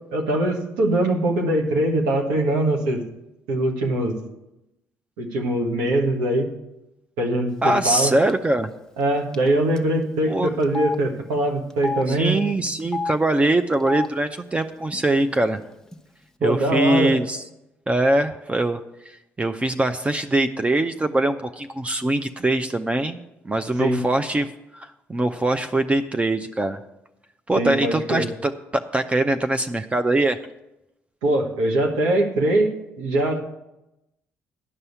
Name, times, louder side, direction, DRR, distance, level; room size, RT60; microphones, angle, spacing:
voice 1, 0.1-3.0 3.5-4.1 5.2-6.5 7.2-8.1 9.0-12.4 16.4-17.1 23.8-24.0 27.5-28.3 31.2-32.7 33.0-33.4, right 1 dB, 80° right, 1 dB, 1.5 m, -22 dB
voice 2, 7.6-8.7 10.3-10.5 12.1-15.6 16.4-17.4 17.9-23.2 23.4-26.8 27.5-30.4, right 2 dB, 20° right, 8 dB, 0.6 m, -22 dB
Telephone, 7.9-8.0 8.3-8.4 9.3-9.5 9.8-9.9 10.6-11.0 11.7-12.0 12.8-13.1 13.7-14.1 14.9-15.0 15.3-15.9, left 4 dB, 10° left, 1.0 m, -29 dB
11.0 x 5.5 x 8.1 m, 0.93 s
hypercardioid pair, 55°, 6 cm